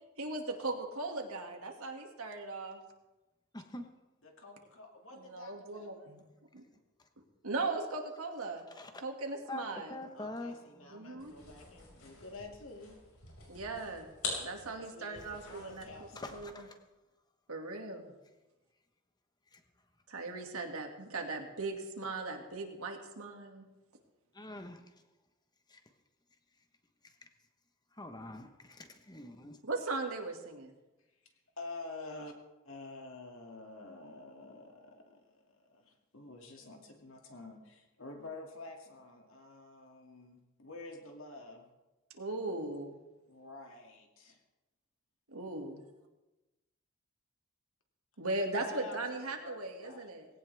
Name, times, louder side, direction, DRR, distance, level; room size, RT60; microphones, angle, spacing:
voice 1, 0.2-2.8 5.1-6.2 6.5-6.6 7.4-8.6 9.0-10.0 10.9-11.3 13.5-14.1 14.4-16.7 17.5-18.1 20.1-23.6 29.6-30.7 42.2-43.0 45.3-45.8 48.2-50.3, right 2 dB, 80° right, 3 dB, 2.3 m, -38 dB
voice 2, 3.5-3.9 8.8-9.0 9.5-11.3 16.2-16.8 19.5-19.6 24.3-24.8 25.7-25.8 28.0-29.6, left 2 dB, 20° left, 7 dB, 1.2 m, -45 dB
voice 3, 4.2-6.1 10.1-13.0 14.6-16.4 31.2-32.3 32.6-41.7 43.3-44.4 48.6-50.1, left 2 dB, 65° left, 2 dB, 2.5 m, -49 dB
sound 1, 11.2-16.6, left 3 dB, 85° left, 5.8 m, -45 dB
19.0 x 17.0 x 3.5 m, 1.1 s
head